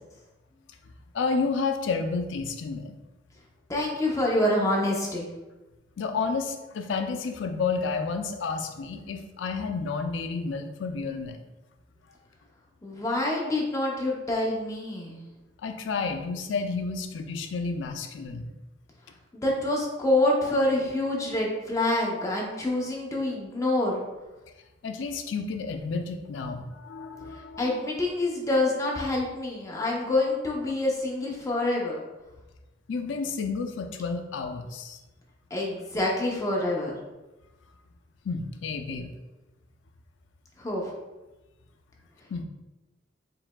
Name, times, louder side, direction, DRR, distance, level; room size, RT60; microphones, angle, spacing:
voice 1, 1.1-3.0 6.0-11.4 15.6-18.5 24.8-27.8 32.9-35.0 38.2-39.1 42.3-42.4, left 4 dB, 70° left, 6 dB, 0.4 m, -31 dB
voice 2, 3.7-5.3 12.8-15.2 19.3-24.0 27.6-32.0 35.5-36.9 40.6-40.9, left 1 dB, 15° left, -2 dB, 0.7 m, -26 dB
4.8 x 3.3 x 2.2 m, 1.1 s
head